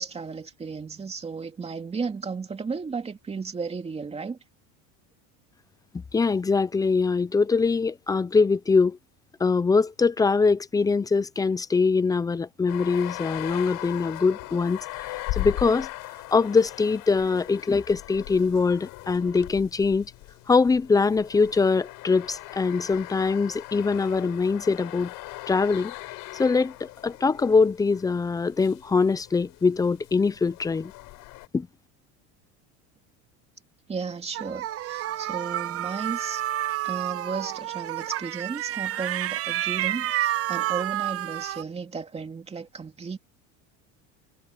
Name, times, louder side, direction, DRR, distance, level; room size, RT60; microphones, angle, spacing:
voice 1, 0.0-4.4 33.9-36.4 36.8-43.2, right 5 dB, 15° right, 2.6 m, -34 dB
voice 2, 6.1-9.0 9.4-14.8 15.3-15.9 16.3-20.1 20.5-25.1 25.5-25.9 26.4-30.9 31.5-31.7, left 4 dB, 10° left, 0.6 m, -23 dB
sound 1, 12.7-31.5, left 21 dB, 60° left, 4.4 m, -39 dB
sound 2, 34.3-41.6, right 13 dB, 40° right, 1.0 m, -29 dB
cardioid pair, 150°, 36 cm